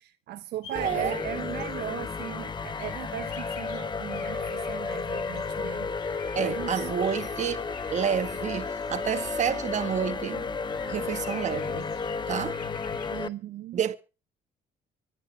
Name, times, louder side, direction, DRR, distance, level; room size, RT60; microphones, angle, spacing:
voice 1, 0.0-5.9 6.3-6.9 13.1-13.8, right 13 dB, 75° right, 1.1 m, -38 dB
sound 1, 0.6-13.1, left 6 dB, 90° left, 5.3 m, -47 dB
sound 2, 0.7-13.3, left 4 dB, 25° left, 0.9 m, -33 dB
voice 2, 0.7-1.2 6.3-7.6 7.9-10.5 10.9-11.9 12.3-12.6 13.7-14.0, right 8 dB, 45° right, 1.5 m, -29 dB
24.5 x 11.0 x 3.4 m
cardioid pair, 110°, 17 cm